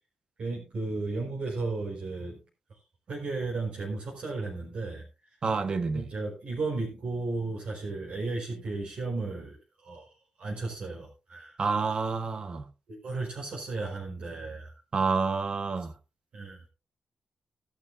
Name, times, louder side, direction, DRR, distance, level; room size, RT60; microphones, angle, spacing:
voice 1, 0.4-2.4 2.7-2.8 3.1-5.0 5.9-11.6 12.9-14.7 16.3-16.7, right 3 dB, 55° right, 4.7 m, -34 dB
voice 2, 5.4-6.0 11.6-12.6 14.9-15.9, right 4 dB, 40° right, 1.3 m, -28 dB
16.0 x 12.0 x 2.6 m
wide cardioid pair, 155°, 2 cm